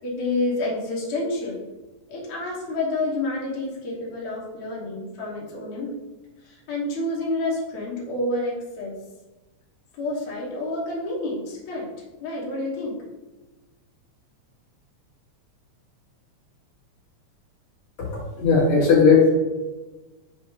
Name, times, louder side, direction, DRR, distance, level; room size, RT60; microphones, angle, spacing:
voice 1, 0.0-1.6 2.1-5.9 6.4-9.0 9.9-11.9 12.2-13.0, left 2 dB, 80° left, -5 dB, 2.8 m, -29 dB
voice 2, 18.4-19.3, left 5 dB, 60° left, -7 dB, 3.2 m, -16 dB
7.3 x 2.8 x 5.8 m, 1.1 s
omnidirectional pair, 3.4 m